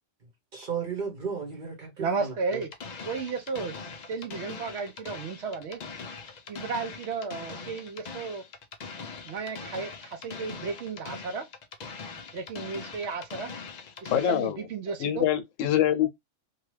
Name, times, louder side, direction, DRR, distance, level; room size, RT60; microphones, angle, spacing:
voice 1, 0.5-2.6 9.6-9.7, right 6 dB, 45° right, 1.0 m, -35 dB
voice 2, 2.0-2.7 3.0-3.8 4.1-5.8 6.5-8.4 9.2-11.5 12.3-13.5 14.0-15.2, right 4 dB, 65° right, 0.8 m, -33 dB
sound 1, 2.5-14.5, left 4 dB, 60° left, 0.4 m, -42 dB
voice 3, 14.1-14.6 15.0-16.1, left 11 dB, 85° left, 0.9 m, -24 dB
2.8 x 2.3 x 3.1 m
omnidirectional pair, 1.3 m